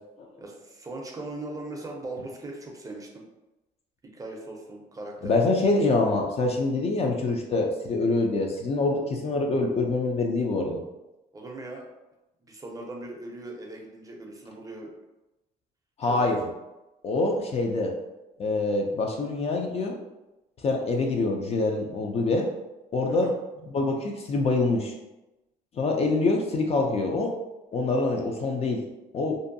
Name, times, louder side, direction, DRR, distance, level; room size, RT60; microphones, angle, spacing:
voice 1, 0.4-3.2 4.0-5.6 11.3-11.9 12.4-14.9 16.0-16.3 23.0-23.3, right 2 dB, 20° right, 0 dB, 0.5 m, -39 dB
voice 2, 5.2-10.8 16.0-16.4 17.0-17.9 18.4-20.0 20.6-22.5 22.9-23.3 23.7-24.9 25.7-27.3 27.7-28.8 29.1-29.4, left 3 dB, 35° left, 1 dB, 0.4 m, -25 dB
2.6 x 2.2 x 2.6 m, 0.99 s
cardioid pair, 110°, 17 cm